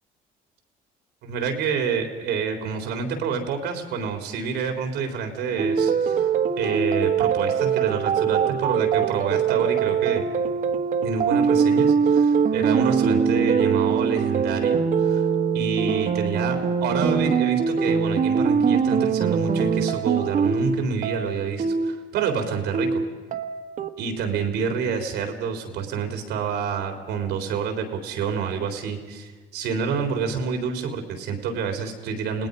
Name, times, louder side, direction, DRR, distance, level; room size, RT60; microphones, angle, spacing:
voice 1, 1.2-6.3 6.5-10.3 11.0-15.3 15.5-23.0 24.0-32.5, right 6 dB, 90° right, 5 dB, 3.7 m, -28 dB
sound 1, 5.6-23.9, right 6 dB, 50° right, 1.5 m, -22 dB
29.5 x 19.0 x 5.3 m, 1.4 s
cardioid pair, 110°, 17 cm